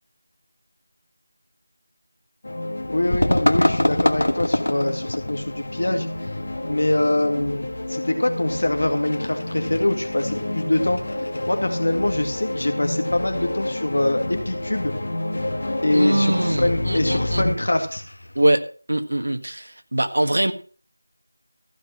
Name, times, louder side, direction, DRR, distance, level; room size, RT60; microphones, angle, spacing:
sound 1, 2.4-17.5, left 1 dB, 35° left, 2.2 m, -29 dB
voice 1, 2.9-6.1 6.6-11.0 11.5-14.9 15.8-18.0, left 1 dB, 50° left, 5 dB, 2.2 m, -24 dB
sound 2, 3.1-18.5, left 1 dB, 80° left, 1.3 m, -29 dB
voice 2, 15.9-17.4 18.3-18.6 18.9-20.5, right 1 dB, 60° right, 7 dB, 1.6 m, -22 dB
15.0 x 6.0 x 7.5 m, 0.41 s
figure-of-eight pair, 180°, 0 cm